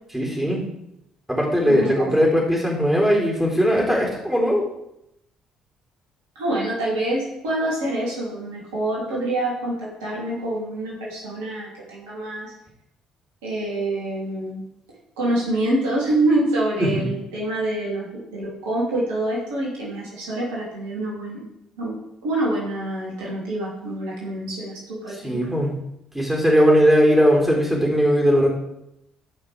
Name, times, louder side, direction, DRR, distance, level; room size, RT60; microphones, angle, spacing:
voice 1, 0.1-0.6 1.3-4.7 16.8-17.0 25.2-25.8 26.1-28.5, equal, 5° right, -2 dB, 4.0 m, -19 dB
voice 2, 1.7-2.2 6.3-12.5 13.4-14.6 15.2-21.4 21.8-25.4, right 1 dB, 70° right, -5 dB, 3.0 m, -26 dB
16.0 x 6.0 x 3.5 m, 0.81 s
figure-of-eight pair, 50°, 3 cm